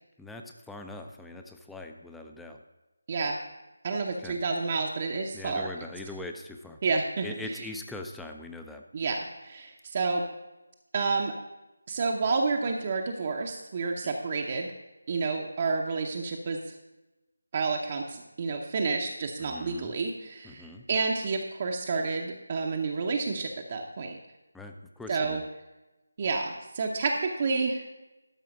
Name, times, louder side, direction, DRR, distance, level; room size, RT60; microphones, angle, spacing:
voice 1, 0.2-2.6 4.2-4.4 5.3-6.8 7.2-8.8 14.0-14.1 19.4-20.0 20.4-20.9 24.5-25.5, left 2 dB, 5° left, 4 dB, 0.4 m, -42 dB
voice 2, 3.8-5.7 6.8-7.6 8.9-10.2 10.9-11.3 11.9-14.7 15.1-16.7 17.5-24.2 25.1-25.4 26.2-27.8, right 4 dB, 30° right, 1 dB, 0.7 m, -30 dB
12.5 x 4.9 x 5.1 m, 1.0 s
figure-of-eight pair, 160°, 0 cm